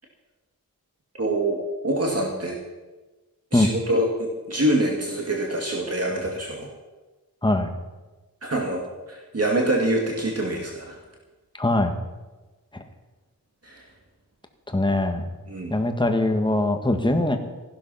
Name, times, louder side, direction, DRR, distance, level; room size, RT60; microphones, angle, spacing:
voice 1, 1.2-1.6 1.8-2.6 3.5-6.7 8.4-8.8 9.1-11.0 13.6-13.8 15.5-15.7, right 1 dB, 40° right, 0 dB, 2.4 m, -25 dB
voice 2, 11.6-12.0 14.7-15.3 15.7-17.4, left 1 dB, 15° left, 5 dB, 1.6 m, -22 dB
15.0 x 11.5 x 5.7 m, 1.2 s
wide cardioid pair, 80°, 36 cm